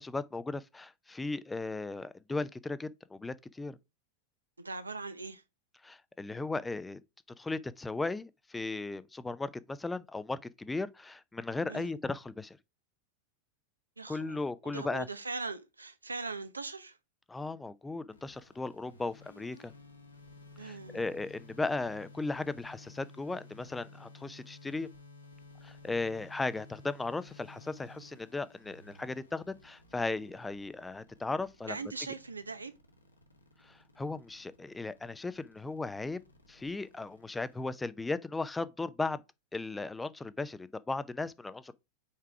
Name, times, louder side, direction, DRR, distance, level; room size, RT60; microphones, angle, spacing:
voice 1, 0.0-3.8 5.8-7.0 7.4-12.6 14.1-15.1 17.3-19.7 20.6-24.9 25.6-31.8 33.6-36.2 36.5-39.2 39.5-41.7, left 3 dB, 10° left, 0.5 m, -36 dB
voice 2, 4.6-5.4 11.7-11.9 14.0-14.4 14.6-17.0 20.6-21.1 31.6-32.7, right 3 dB, 80° right, 0.7 m, -40 dB
sound 1, 18.1-37.6, left 3 dB, 80° left, 1.6 m, -55 dB
5.7 x 4.7 x 4.6 m
figure-of-eight pair, 90°, 0 cm